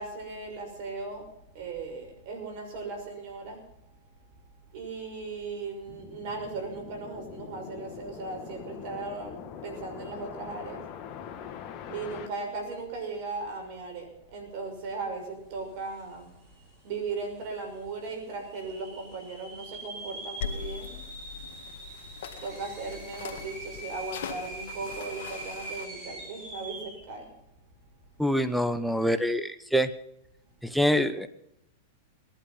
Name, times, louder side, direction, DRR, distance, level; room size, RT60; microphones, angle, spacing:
voice 1, 0.0-4.4 4.7-10.9 11.2-11.5 11.8-21.1 22.4-27.3, right 3 dB, 55° right, 4 dB, 6.2 m, -38 dB
sound 1, 5.9-12.3, left 8 dB, 35° left, 1.9 m, -43 dB
sound 2, 16.1-16.2 16.4-17.0 17.5-17.6 18.3-27.1, right 2 dB, 40° right, 6.5 m, -43 dB
sound 3, 20.4-25.9, left 7 dB, 70° left, 1.9 m, -41 dB
voice 2, 28.2-29.9 30.7-31.3, equal, ahead, 11 dB, 1.1 m, -25 dB
19.5 x 11.5 x 5.7 m, 0.78 s
hypercardioid pair, 120°, 0 cm